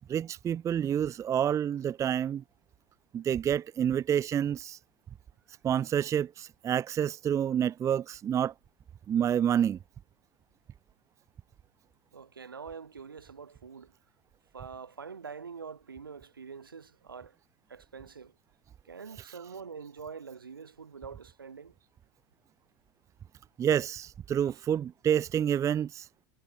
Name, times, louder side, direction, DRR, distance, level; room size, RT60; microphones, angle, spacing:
voice 1, 0.1-2.4 3.1-4.8 5.6-8.5 9.1-9.8 19.2-19.5 23.6-26.1, right 9 dB, 25° right, 0.5 m, -28 dB
voice 2, 12.1-13.9 14.5-17.4 17.7-18.3 18.9-21.7, right 6 dB, 90° right, 2.2 m, -45 dB
hypercardioid pair, 85°, 11 cm